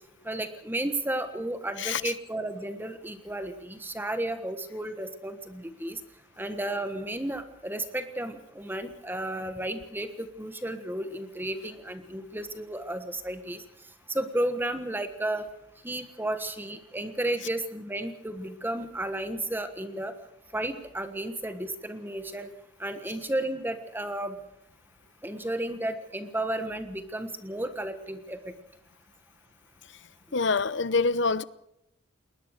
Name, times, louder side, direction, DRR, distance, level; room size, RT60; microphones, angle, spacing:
voice 1, 0.2-6.0 6.4-13.6 14.1-15.4 15.8-20.1 20.5-22.5 22.8-24.4 25.2-28.5 30.3-30.4, right 1 dB, 10° right, 1.3 m, -33 dB
voice 2, 30.3-31.4, left 4 dB, 60° left, 0.8 m, -25 dB
20.5 x 20.0 x 6.6 m
head